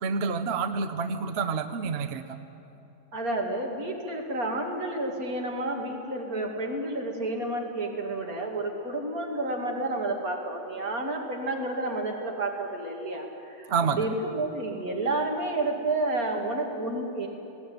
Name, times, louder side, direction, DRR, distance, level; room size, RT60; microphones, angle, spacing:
voice 1, 0.0-2.4 13.7-14.0, right 5 dB, 50° right, 9 dB, 1.0 m, -28 dB
voice 2, 3.1-17.3, right 2 dB, 80° right, 1 dB, 3.0 m, -30 dB
19.0 x 18.0 x 9.5 m, 3.0 s
omnidirectional pair, 1.5 m